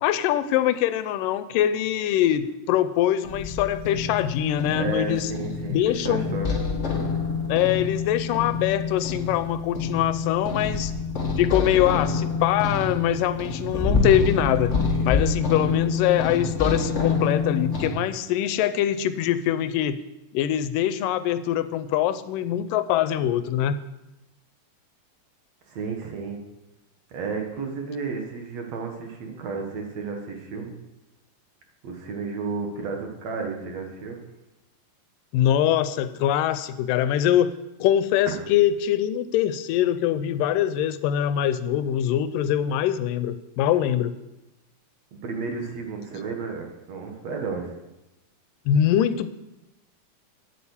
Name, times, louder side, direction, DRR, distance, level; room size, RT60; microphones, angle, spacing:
voice 1, 0.0-5.3 5.7-6.4 7.5-10.9 11.4-14.8 15.1-20.0 20.3-23.8 35.3-44.1 48.7-49.3, left 11 dB, 85° left, 13 dB, 2.2 m, -23 dB
sound 1, 3.2-17.9, left 4 dB, 40° left, 1.0 m, -27 dB
voice 2, 4.7-6.6 25.7-26.4 27.1-30.7 31.8-34.2 38.3-38.4 45.1-47.7, right 4 dB, 60° right, 3 dB, 2.4 m, -32 dB
9.3 x 8.6 x 7.1 m, 0.97 s
omnidirectional pair, 3.8 m